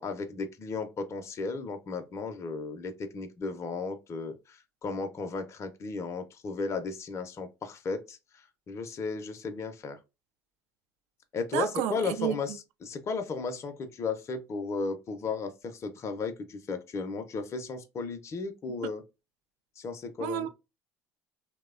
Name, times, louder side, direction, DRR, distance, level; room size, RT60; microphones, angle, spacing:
voice 1, 0.0-10.0 11.3-19.0 19.8-20.5, left 4 dB, 35° left, 0.5 m, -35 dB
voice 2, 11.5-12.4 20.2-20.5, right 11 dB, 70° right, 0.4 m, -30 dB
2.8 x 2.0 x 2.4 m
hypercardioid pair, 75°, 8 cm